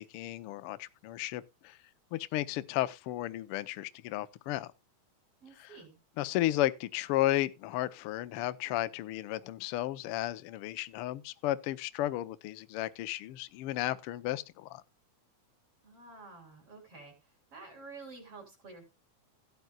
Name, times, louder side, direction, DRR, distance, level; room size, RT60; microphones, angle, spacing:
voice 1, 0.0-1.8 2.1-4.7 5.6-5.8 6.2-14.8, left 15 dB, 90° left, 1.2 m, -33 dB
voice 2, 5.4-6.0 15.8-17.1 17.5-18.9, right 3 dB, 50° right, 4.5 m, -50 dB
16.0 x 9.3 x 2.3 m
omnidirectional pair, 3.4 m